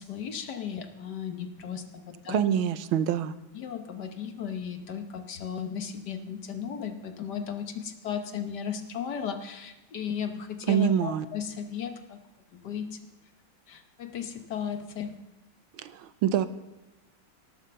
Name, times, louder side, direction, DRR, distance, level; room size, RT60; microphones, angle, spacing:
voice 1, 0.0-2.5 3.5-12.2 12.5-13.1 13.7-15.2, left 7 dB, 60° left, 7 dB, 1.6 m, -35 dB
voice 2, 2.3-3.3 10.7-11.3 15.7-16.5, right 10 dB, 90° right, 13 dB, 1.6 m, -26 dB
18.0 x 7.6 x 6.8 m, 1.0 s
omnidirectional pair, 2.2 m